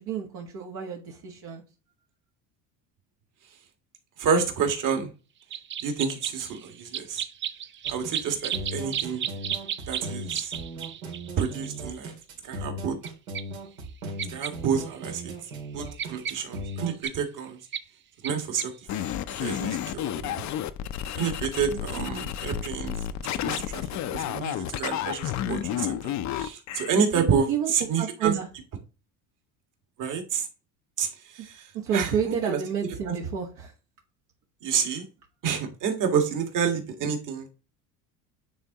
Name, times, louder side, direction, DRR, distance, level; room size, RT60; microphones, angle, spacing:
voice 1, 0.0-1.6 8.5-8.6 21.7-22.1 27.1-28.5 31.8-33.7, right 8 dB, 70° right, 0 dB, 1.5 m, -30 dB
voice 2, 4.2-5.1 5.8-7.2 7.9-9.3 9.9-10.5 11.4-12.1 12.4-12.9 14.3-15.3 15.7-17.6 18.2-19.0 19.4-20.4 21.1-23.0 23.4-26.0 26.3-28.4 30.0-30.4 31.0-31.1 31.3-31.6 31.9-33.2 34.6-35.0 35.4-37.5, right 6 dB, 50° right, 5 dB, 1.7 m, -29 dB
sound 1, 5.5-11.8 13.0-13.1 13.3-13.4 14.2-14.5 14.9-15.0 15.3-17.1 17.7-17.8 18.2-18.3 18.6-18.7, right 9 dB, 30° right, 0.5 m, -33 dB
sound 2, 7.8-17.1, right 1 dB, 90° right, 2.4 m, -38 dB
sound 3, 18.9-26.9, left 11 dB, 45° left, 0.6 m, -31 dB
9.4 x 3.5 x 2.9 m, 0.33 s
supercardioid pair, 90°, 41 cm